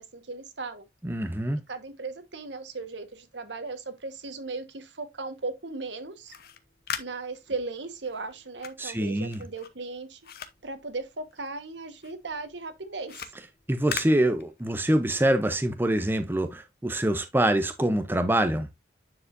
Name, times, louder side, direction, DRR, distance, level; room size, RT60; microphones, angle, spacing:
voice 1, 0.0-0.9 1.7-6.3 7.0-10.2 10.6-13.3, right 3 dB, 85° right, 1.3 m, -37 dB
voice 2, 1.0-1.6 8.8-9.4 13.7-18.7, right 1 dB, 10° right, 0.6 m, -25 dB
sound 1, 6.1-11.7 12.0-14.9, left 7 dB, 55° left, 0.8 m, -41 dB
9.9 x 4.9 x 2.5 m
head